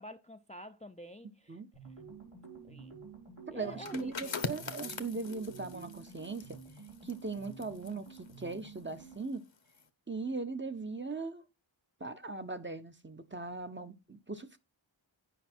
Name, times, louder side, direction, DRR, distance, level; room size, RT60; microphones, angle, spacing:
voice 1, 0.0-1.6 2.7-3.0 3.5-4.5, equal, 15° left, 0.5 m, -49 dB
sound 1, 1.7-9.4, right 5 dB, 75° right, 4.2 m, -51 dB
voice 2, 3.5-6.6 7.0-9.4 10.1-11.4 12.0-14.6, right 3 dB, 25° right, 0.8 m, -39 dB
sound 2, 3.7-9.2 9.6-9.8, left 5 dB, 65° left, 1.0 m, -43 dB
9.2 x 5.3 x 4.3 m
wide cardioid pair, 50°, 48 cm